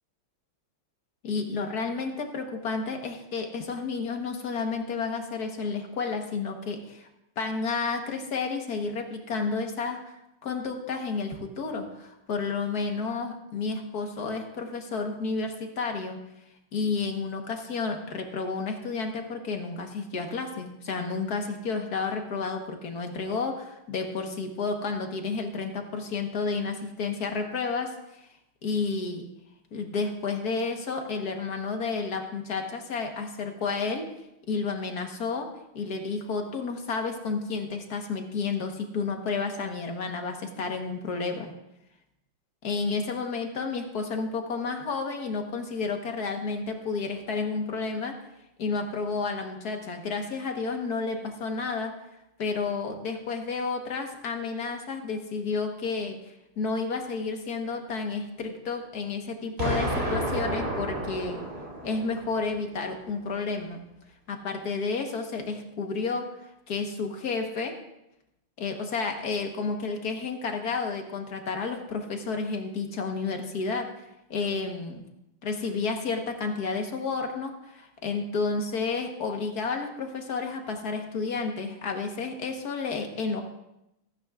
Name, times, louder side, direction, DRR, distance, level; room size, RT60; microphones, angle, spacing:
voice 1, 1.2-7.1 7.4-10.1 10.4-16.2 16.7-28.3 28.6-29.3 29.7-34.1 34.5-41.5 42.6-48.2 48.6-52.0 52.4-56.2 56.6-61.4 61.8-63.8 64.3-66.4 66.7-67.8 68.6-73.9 74.3-75.0 75.4-83.4, left 4 dB, 55° left, 4 dB, 1.7 m, -31 dB
Explosion, 59.6-62.6, right 1 dB, 30° right, 2.1 m, -31 dB
15.5 x 14.5 x 2.5 m, 0.85 s
omnidirectional pair, 2.2 m